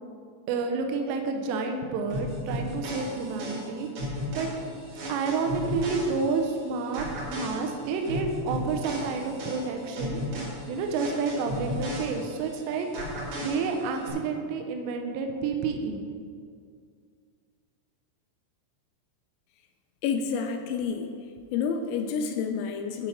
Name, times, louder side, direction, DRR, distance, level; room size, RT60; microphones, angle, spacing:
voice 1, 0.5-4.5 5.1-7.1 7.3-10.2 10.7-12.9 13.4-16.0, right 4 dB, 85° right, 4 dB, 2.6 m, -30 dB
sound 1, 2.1-6.6 6.9-12.6 12.9-14.1, equal, 60° right, 1.8 m, -35 dB
voice 2, 20.0-21.1 21.5-23.1, left 6 dB, 85° left, 6 dB, 2.8 m, -29 dB
12.5 x 4.8 x 5.1 m, 2.2 s
omnidirectional pair, 5.8 m